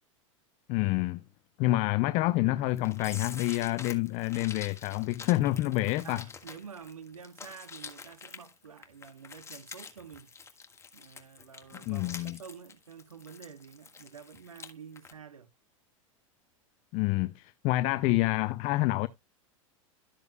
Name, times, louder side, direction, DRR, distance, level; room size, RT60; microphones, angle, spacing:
voice 1, 0.7-1.2 1.6-6.2 11.9-12.4 16.9-19.1, left 18 dB, 45° left, 0.6 m, -28 dB
sound 1, 2.8-14.7 15.0-15.1, left 5 dB, 15° left, 1.6 m, -46 dB
voice 2, 6.0-10.3 10.9-15.5, right 6 dB, 85° right, 1.1 m, -48 dB
12.5 x 7.8 x 2.3 m
hypercardioid pair, 95°, 17 cm